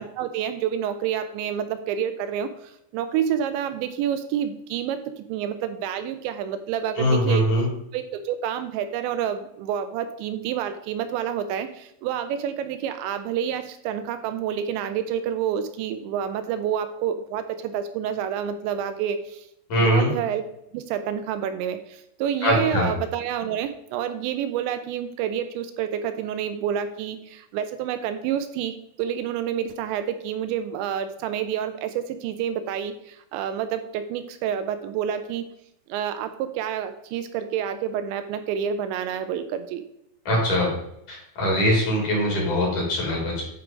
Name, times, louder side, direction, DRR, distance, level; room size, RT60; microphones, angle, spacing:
voice 1, 0.0-7.4 7.9-19.5 19.8-20.5 20.7-35.5 35.9-39.8, right 9 dB, 80° right, 9 dB, 2.9 m, -28 dB
voice 2, 7.0-7.7 19.7-20.1 22.4-22.9 40.3-40.7 41.1-43.4, equal, 45° left, -3 dB, 4.3 m, -22 dB
11.0 x 4.7 x 5.2 m, 0.78 s
omnidirectional pair, 5.3 m